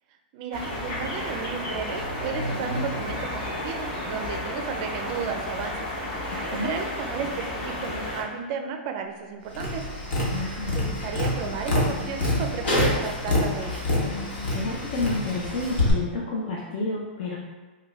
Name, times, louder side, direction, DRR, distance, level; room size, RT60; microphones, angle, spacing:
voice 1, 0.3-5.9 6.5-9.8 10.7-13.9, right 6 dB, 45° right, 5 dB, 0.4 m, -33 dB
sound 1, 0.5-8.2, left 1 dB, 40° left, 1.0 m, -32 dB
voice 2, 6.3-6.8 10.3-10.8 14.2-17.4, left 2 dB, 60° left, -3 dB, 0.5 m, -30 dB
Tap, 9.5-15.9, left 2 dB, 85° left, 1.1 m, -26 dB
4.8 x 2.2 x 2.4 m, 1.3 s
hypercardioid pair, 140°, 6 cm